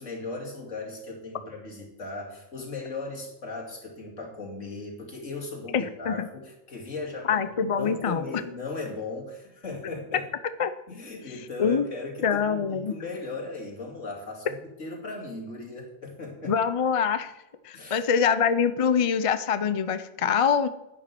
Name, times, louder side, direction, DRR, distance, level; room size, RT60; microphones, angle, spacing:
voice 1, 0.0-10.3 10.9-16.6 17.7-18.0, left 3 dB, 70° left, -1 dB, 3.1 m, -37 dB
voice 2, 5.7-6.3 7.3-8.2 10.6-10.7 11.6-11.8 12.2-12.9 16.4-17.3 17.6-20.7, left 6 dB, 40° left, 11 dB, 0.5 m, -24 dB
11.0 x 9.3 x 6.0 m, 0.90 s
omnidirectional pair, 1.3 m